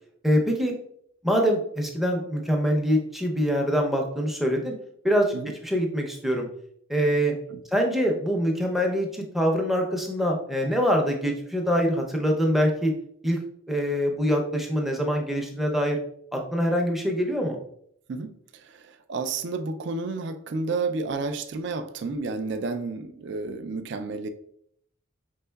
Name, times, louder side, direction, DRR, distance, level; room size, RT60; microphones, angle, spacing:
voice 1, 0.2-0.7 1.2-4.7 5.0-5.3 5.6-6.5 6.9-7.4 7.7-12.9 13.2-13.4 13.7-16.0 16.3-17.6, equal, ahead, 0.5 m, -24 dB
voice 2, 18.1-24.3, right 3 dB, 55° right, 0.3 m, -31 dB
5.2 x 3.7 x 2.2 m
head